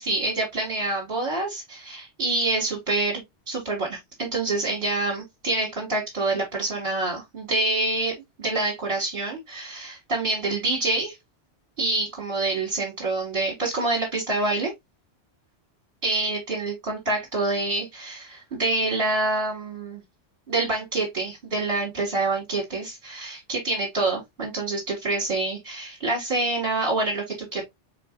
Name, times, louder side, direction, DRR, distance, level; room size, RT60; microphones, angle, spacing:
voice 1, 0.0-8.1 8.4-11.2 11.8-14.7 16.0-20.0 20.5-27.6, right 2 dB, 50° right, 1.8 m, -26 dB
4.4 x 4.0 x 2.3 m
omnidirectional pair, 1.2 m